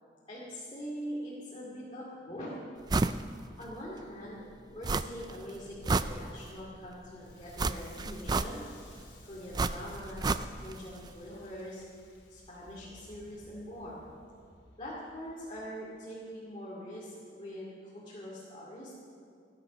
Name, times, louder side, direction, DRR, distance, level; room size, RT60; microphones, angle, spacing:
voice 1, 0.3-2.5 3.6-8.6 9.2-11.8 12.3-14.0 14.8-19.0, equal, 30° left, -7 dB, 2.6 m, -43 dB
sound 1, 2.9-3.2 3.6-3.7 4.8-5.3 5.7-6.6 7.6-8.8 9.5-10.8 11.1-11.2, right 3 dB, 20° right, 0.3 m, -30 dB
Crackle, 7.1-16.1, left 1 dB, 85° left, 3.7 m, -56 dB
16.5 x 10.5 x 6.4 m, 2.3 s
head